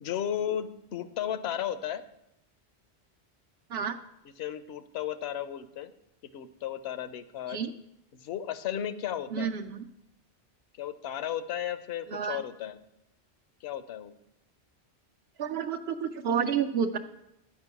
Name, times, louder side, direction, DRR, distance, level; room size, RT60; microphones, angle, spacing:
voice 1, 0.0-2.0 4.4-5.9 6.3-7.6 8.1-9.5 10.8-12.8 13.6-14.1, left 10 dB, 75° left, 12 dB, 0.9 m, -34 dB
voice 2, 9.3-9.6 12.1-12.4 15.4-17.0, right 7 dB, 75° right, 2 dB, 0.8 m, -29 dB
12.0 x 5.2 x 8.1 m, 0.84 s
omnidirectional pair, 1.1 m